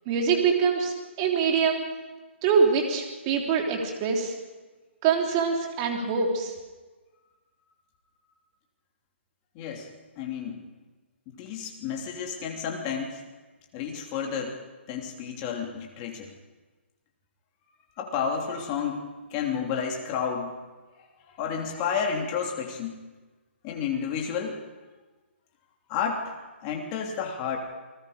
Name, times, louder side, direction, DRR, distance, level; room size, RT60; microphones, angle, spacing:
voice 1, 0.1-1.8 2.4-4.3 5.0-6.5, right 6 dB, 25° right, 1 dB, 3.3 m, -24 dB
voice 2, 9.5-9.9 10.2-10.6 11.3-13.1 13.7-14.5 14.9-16.3 18.0-19.0 19.3-20.6 21.4-22.9 23.6-24.6 25.9-26.3 26.6-27.6, left 7 dB, 25° left, 0 dB, 3.1 m, -31 dB
28.5 x 19.5 x 5.1 m, 1.2 s
hypercardioid pair, 165°, 7 cm